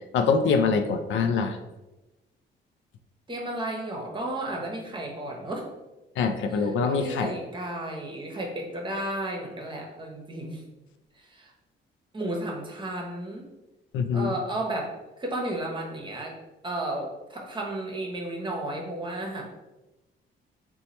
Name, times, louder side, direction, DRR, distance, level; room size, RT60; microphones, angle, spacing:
voice 1, 0.1-1.6 6.2-7.3 13.9-14.3, left 5 dB, 75° left, 8 dB, 0.4 m, -24 dB
voice 2, 3.3-5.7 6.5-10.6 11.1-11.5 12.1-13.5 14.1-16.3 16.6-19.4, right 1 dB, 25° right, 0 dB, 0.8 m, -33 dB
2.8 x 2.2 x 4.1 m, 1.0 s
cardioid pair, 90°, 20 cm